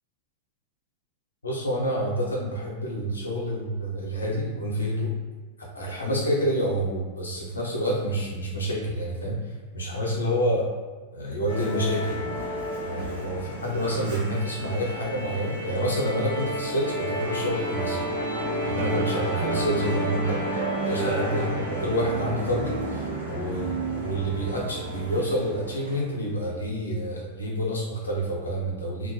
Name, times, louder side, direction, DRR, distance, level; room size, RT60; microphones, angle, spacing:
voice 1, 1.4-5.1 5.7-9.4 9.7-10.7 11.1-12.3 12.8-18.0 18.7-20.6 20.9-23.7 23.9-29.1, equal, 75° left, -3 dB, 0.6 m, -28 dB
Musical instrument, 11.5-26.1, right 1 dB, 80° right, 0.6 m, -31 dB
2.2 x 2.1 x 2.7 m, 1.3 s
figure-of-eight pair, 90°, 0 cm